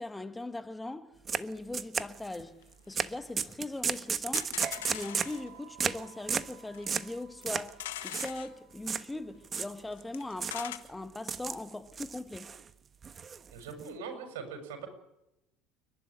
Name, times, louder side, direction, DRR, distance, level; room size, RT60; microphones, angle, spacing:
voice 1, 0.0-4.6 4.9-12.5, left 2 dB, 10° left, 1.4 m, -40 dB
sound 1, 1.3-1.4 1.7-2.4 2.9-3.1 3.4-5.4 5.8-6.0 6.3-6.5 6.9-7.1 7.5-7.7 8.0-8.3 8.9-9.0 9.4-10.0 10.4-10.6 11.1-11.6 11.9-12.6 13.0-13.8, right 6 dB, 35° right, 1.3 m, -33 dB
sound 2, 2.6-2.7 2.9-3.0 3.5-3.6 3.8-3.9 4.4-5.5 6.3-6.4 6.7-6.8 7.3-8.5 9.6-9.7 9.9-10.8, left 13 dB, 80° left, 1.7 m, -41 dB
sound 3, 4.6-11.4, right 8 dB, 55° right, 1.9 m, -51 dB
voice 2, 13.5-14.9, right 5 dB, 75° right, 6.8 m, -41 dB
29.5 x 12.0 x 9.9 m
hypercardioid pair, 75°, 0 cm